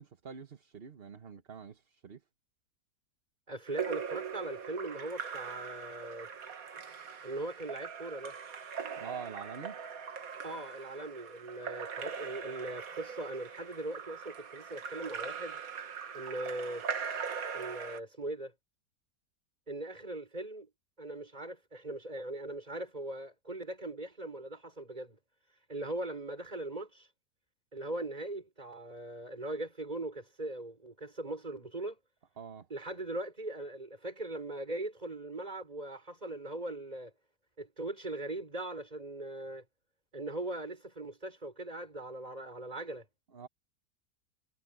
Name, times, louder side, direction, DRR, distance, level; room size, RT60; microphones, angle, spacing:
voice 1, 0.0-2.2 9.0-9.8 32.4-32.7 43.3-43.5, right 6 dB, 40° right, 1.2 m, -45 dB
voice 2, 3.5-6.3 7.2-8.4 10.4-15.6 16.1-16.8 17.5-18.5 19.7-20.7 21.0-25.2 25.7-27.1 27.7-32.0 32.7-37.1 37.6-39.6 40.1-43.0, right 2 dB, 25° right, 4.9 m, -40 dB
Splash splatter / Drip / Trickle dribble, 3.7-18.0, right 6 dB, 60° right, 1.8 m, -41 dB
omnidirectional pair, 1.7 m